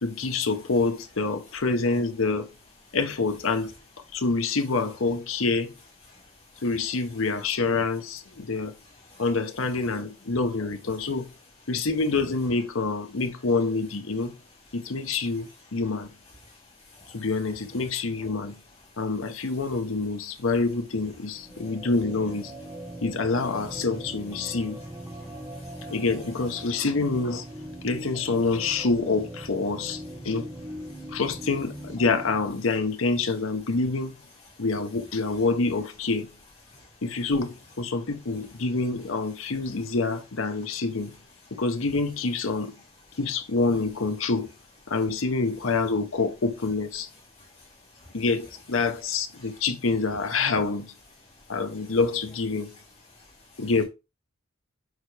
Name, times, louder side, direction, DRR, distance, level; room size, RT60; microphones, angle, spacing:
voice 1, 0.0-2.5 2.9-3.7 4.1-5.7 6.6-8.7 9.2-11.3 11.7-14.4 14.7-16.1 17.1-18.6 19.0-22.6 23.0-24.8 25.9-27.5 27.8-30.5 31.1-34.2 34.6-36.3 37.0-41.2 41.5-42.7 43.2-44.5 44.9-47.1 48.1-50.9 51.5-52.7 53.6-53.8, left 3 dB, 75° left, 0.9 m, -27 dB
voice 2, 16.9-17.3 25.2-25.9 30.9-31.0 36.7-36.9 47.4-47.7 48.0-48.1, left 2 dB, 30° left, 3.0 m, -53 dB
sound 1, 21.0-32.5, right 1 dB, 10° right, 1.1 m, -40 dB
6.5 x 4.7 x 3.3 m
head